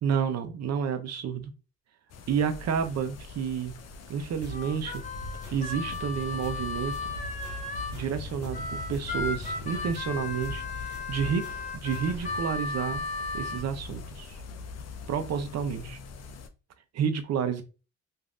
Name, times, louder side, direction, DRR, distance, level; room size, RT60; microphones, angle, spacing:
voice 1, 0.0-1.5 2.3-3.7 4.1-5.0 5.5-6.9 7.9-11.4 11.8-13.0 13.3-14.4 15.1-16.0 16.9-17.6, right 7 dB, 60° right, 8 dB, 0.7 m, -30 dB
sound 1, 2.1-16.5, left 4 dB, 60° left, 0.6 m, -42 dB
sound 2, 4.4-4.6 4.9-6.0 6.4-6.6 6.9-8.6 8.9-10.0 10.4-10.7 10.9-12.4, equal, 75° left, 1.0 m, -43 dB
Harmonica, 4.5-8.0 8.5-13.6, left 3 dB, 25° left, 0.8 m, -35 dB
3.2 x 2.6 x 2.4 m, 0.32 s
cardioid pair, 90°, 30 cm